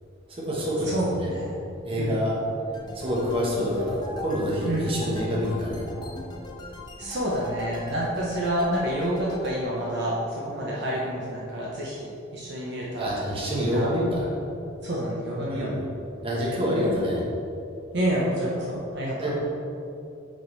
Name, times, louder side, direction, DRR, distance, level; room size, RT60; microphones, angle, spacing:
voice 1, 0.3-1.3 1.8-2.3 2.9-6.1 13.0-14.3 15.5-15.8 16.2-17.2 19.2-19.3, equal, 30° right, -5 dB, 1.2 m, -27 dB
voice 2, 0.9-1.6 2.0-2.2 4.7-4.9 7.0-13.2 13.6-13.9 14.8-15.7 17.9-19.3, right 1 dB, 60° right, -5 dB, 0.8 m, -28 dB
sound 1, 2.7-9.6, left 1 dB, 20° left, 0.5 m, -40 dB
7.2 x 3.6 x 3.9 m, 2.7 s
head